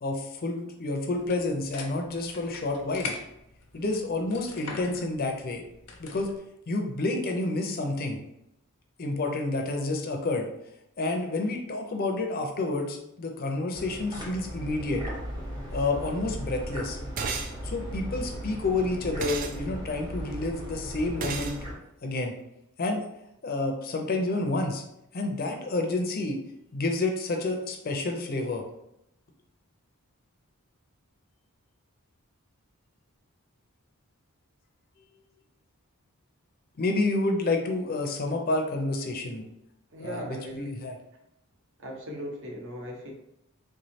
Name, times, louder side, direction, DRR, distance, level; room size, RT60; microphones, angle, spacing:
voice 1, 0.0-3.1 3.7-5.6 6.0-6.3 6.7-8.2 9.0-10.5 11.0-15.0 15.7-17.0 17.6-21.6 22.0-22.3 22.8-23.1 23.4-24.8 25.1-26.4 26.7-28.6 36.8-39.5 40.0-41.0, left 2 dB, 40° left, 3 dB, 0.5 m, -29 dB
sound 1, 1.2-6.4, left 4 dB, 90° left, 0.6 m, -42 dB
sound 2, 13.7-21.7, equal, 20° right, 0.8 m, -37 dB
sound 3, 17.2-17.5 19.2-19.6 21.2-21.6, right 5 dB, 40° right, 0.3 m, -32 dB
voice 2, 39.9-40.7 41.8-43.1, equal, 55° right, 0 dB, 0.8 m, -38 dB
3.5 x 3.1 x 2.7 m, 0.81 s
head